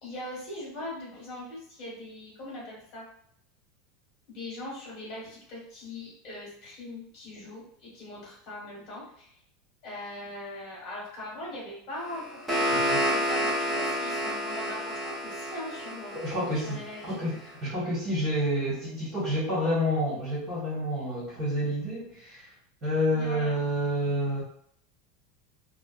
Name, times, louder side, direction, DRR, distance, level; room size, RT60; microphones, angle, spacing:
voice 1, 0.0-3.1 4.3-9.3 9.8-17.2 23.1-23.6, left 1 dB, 35° left, -4 dB, 1.4 m, -41 dB
sound 1, 12.1-17.1, equal, 5° right, 0.8 m, -29 dB
voice 2, 12.7-13.0 16.1-17.3 17.6-22.5 22.8-24.4, equal, 30° right, -10 dB, 1.3 m, -29 dB
3.3 x 2.2 x 2.4 m, 0.65 s
supercardioid pair, 165°, 0 cm